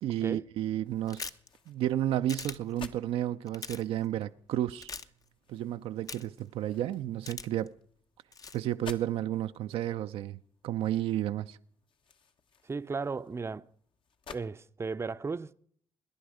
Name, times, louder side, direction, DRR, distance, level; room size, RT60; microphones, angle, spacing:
voice 1, 0.0-1.3 1.7-4.9 5.5-7.7 8.5-10.4 10.6-11.6, right 12 dB, 75° right, 0.5 m, -32 dB
sound 1, 0.8-14.5, left 5 dB, 60° left, 1.2 m, -54 dB
sound 2, 1.1-1.5 2.3-2.6 3.5-3.8 4.8-5.0 6.1-6.4 7.3-7.7 8.3-8.6, left 5 dB, 40° left, 0.7 m, -40 dB
voice 2, 12.7-13.7 14.3-15.5, right 4 dB, 25° right, 0.6 m, -35 dB
21.5 x 10.5 x 5.0 m
supercardioid pair, 60°, 10 cm